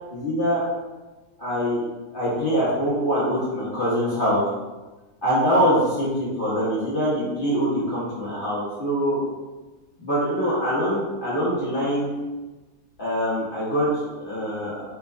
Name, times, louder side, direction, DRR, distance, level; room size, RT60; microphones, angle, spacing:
voice 1, 0.1-0.7 1.4-1.8 2.1-4.4 5.2-9.2 10.0-12.1 13.0-14.7, equal, 50° left, -9 dB, 0.6 m, -24 dB
4.4 x 2.3 x 2.3 m, 1.2 s
omnidirectional pair, 2.0 m